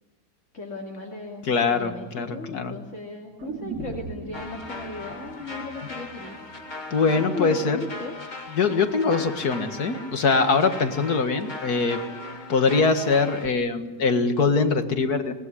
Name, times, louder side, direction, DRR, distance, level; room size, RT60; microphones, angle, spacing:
voice 1, 0.5-1.5 1.7-6.4 7.0-8.1, left 3 dB, 45° left, 0 dB, 3.1 m, -36 dB
voice 2, 1.4-2.7 3.8-3.9 6.9-7.8 8.5-12.0 12.5-15.3, left 4 dB, 65° left, 7 dB, 2.4 m, -23 dB
sound 1, 3.4-7.4 7.7-7.8, right 4 dB, 75° right, 3.2 m, -40 dB
sound 2, 4.3-13.5, left 3 dB, 25° left, 2.0 m, -39 dB
25.5 x 20.0 x 9.9 m, 1.3 s
omnidirectional pair, 1.7 m